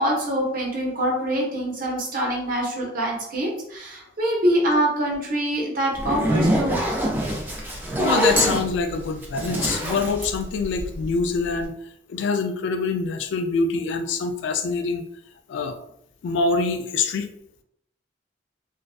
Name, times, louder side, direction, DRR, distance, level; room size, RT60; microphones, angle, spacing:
voice 1, 0.0-6.8, right 1 dB, 50° right, -2 dB, 0.8 m, -24 dB
Zipper (clothing), 5.9-11.2, equal, 10° right, 0.4 m, -24 dB
voice 2, 8.0-11.8 12.1-15.0 15.5-15.8 16.2-17.3, left 4 dB, 85° left, 7 dB, 0.3 m, -25 dB
2.5 x 2.2 x 2.3 m, 0.72 s
head